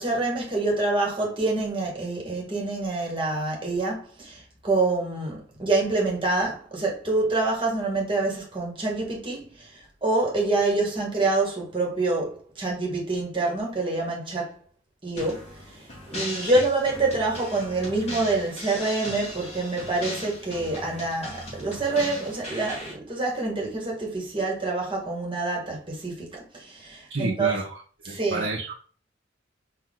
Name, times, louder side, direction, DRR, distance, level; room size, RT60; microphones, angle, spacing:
voice 1, 0.0-14.6 15.0-27.6 28.1-28.5, right 2 dB, 30° right, 1.9 m, -26 dB
sound 1, 15.2-22.9, left 1 dB, 35° left, 2.3 m, -38 dB
voice 2, 27.1-27.8 28.1-28.7, right 2 dB, 75° right, 1.0 m, -30 dB
4.6 x 2.9 x 3.8 m
head